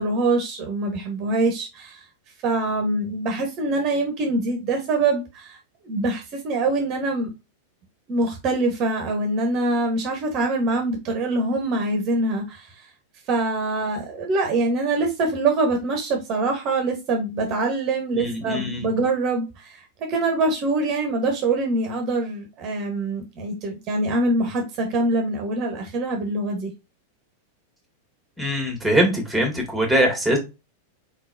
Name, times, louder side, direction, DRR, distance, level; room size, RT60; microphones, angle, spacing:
voice 1, 0.0-2.0 2.4-5.6 5.8-7.3 8.1-12.8 13.3-26.7, right 2 dB, 40° right, 1.1 m, -24 dB
voice 2, 18.1-18.9 28.4-30.4, equal, ahead, 1.9 m, -22 dB
4.1 x 3.8 x 2.6 m
figure-of-eight pair, 95°, 0 cm